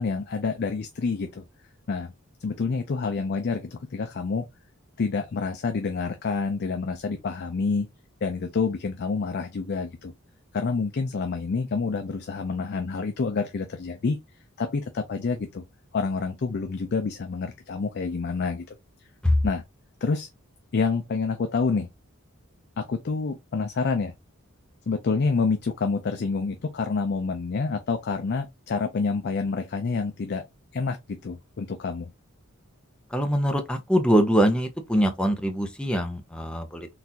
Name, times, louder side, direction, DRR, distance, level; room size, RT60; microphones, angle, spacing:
voice 1, 0.0-1.4 1.9-2.1 2.4-4.4 5.0-7.9 8.2-10.1 10.5-14.2 14.6-15.6 15.9-18.8 19.4-19.6 20.0-20.3 20.7-21.9 22.8-24.1 24.9-30.4 30.7-31.0 31.2-32.1, left 4 dB, 50° left, 0.4 m, -28 dB
voice 2, 33.1-36.9, equal, 5° left, 0.6 m, -23 dB
3.9 x 2.4 x 2.8 m
head